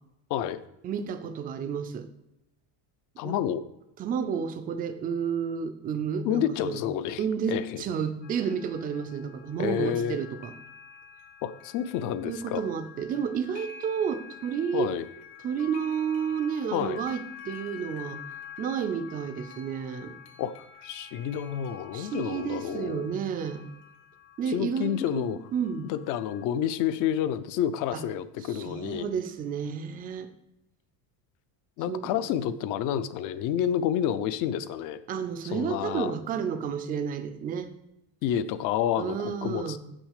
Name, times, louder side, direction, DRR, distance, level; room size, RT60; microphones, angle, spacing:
voice 1, 0.3-0.6 3.2-3.6 6.2-7.8 9.6-10.2 11.4-12.7 14.7-15.0 16.7-17.0 20.4-20.5 20.8-23.1 24.5-25.4 25.8-29.1 31.8-35.0 35.5-36.2 38.2-39.8, left 10 dB, 45° left, 14 dB, 0.5 m, -29 dB
voice 2, 0.8-2.1 3.2-3.4 4.0-6.8 7.2-10.5 12.2-14.9 15.4-18.2 18.6-20.2 21.9-23.6 24.4-25.9 27.9-28.0 28.4-30.3 31.9-32.1 35.1-37.7 39.0-39.8, right 7 dB, 20° right, 10 dB, 0.4 m, -31 dB
sound 1, 8.2-26.5, left 8 dB, 65° left, 1.5 m, -48 dB
8.2 x 6.2 x 6.5 m, 0.88 s
cardioid pair, 175°, 46 cm